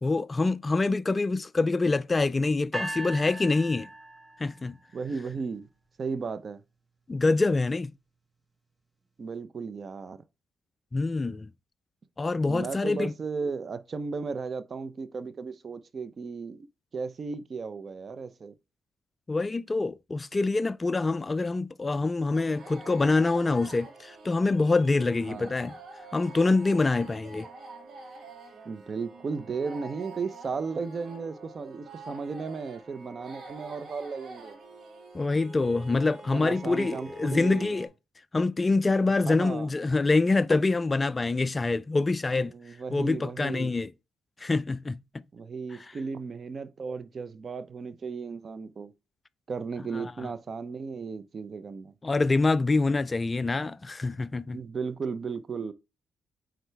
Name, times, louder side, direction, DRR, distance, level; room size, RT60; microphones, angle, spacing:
voice 1, 0.0-3.9 4.4-4.8 7.1-7.9 10.9-11.5 12.2-13.1 19.3-25.7 26.1-27.5 35.1-37.9 38.3-42.5 42.9-43.9 44.4-45.0 49.9-50.1 52.0-54.6, left 3 dB, 25° left, 0.3 m, -25 dB
sound 1, 2.7-4.8, right 1 dB, 10° right, 1.0 m, -38 dB
voice 2, 4.9-5.7 6.0-6.6 9.2-10.2 12.5-16.7 16.9-18.5 25.3-25.5 28.6-34.6 36.3-37.8 39.2-39.7 42.3-43.7 45.3-48.9 49.5-51.9 54.5-55.7, right 5 dB, 40° right, 0.7 m, -35 dB
sound 2, 22.3-37.9, right 3 dB, 60° right, 2.3 m, -46 dB
9.2 x 3.9 x 3.4 m
cardioid pair, 90°, 0 cm